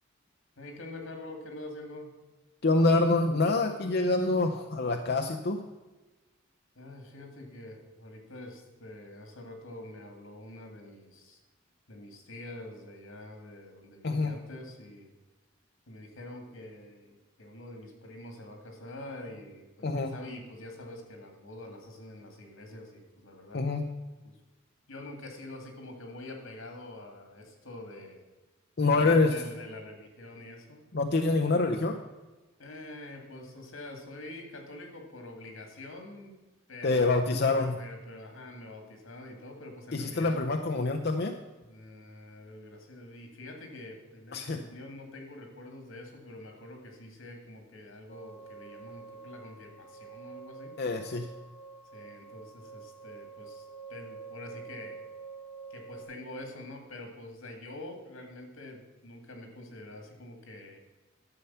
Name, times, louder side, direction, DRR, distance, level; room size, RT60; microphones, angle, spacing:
voice 1, 0.6-2.1 6.8-11.4 11.9-15.1 15.9-23.6 24.2-24.4 24.9-28.2 28.9-30.8 32.6-36.4 36.7-40.4 41.7-50.7 51.9-55.0 55.7-60.8, left 1 dB, 90° left, 4 dB, 2.3 m, -46 dB
voice 2, 2.6-5.6 14.0-14.3 19.8-20.1 23.5-23.8 28.8-29.4 30.9-32.0 36.8-37.8 39.9-41.4 44.3-44.6 50.8-51.3, left 3 dB, 50° left, 4 dB, 0.6 m, -26 dB
sound 1, 48.1-56.0, right 5 dB, 30° left, 1.0 m, -47 dB
11.5 x 6.9 x 5.6 m, 1.2 s
head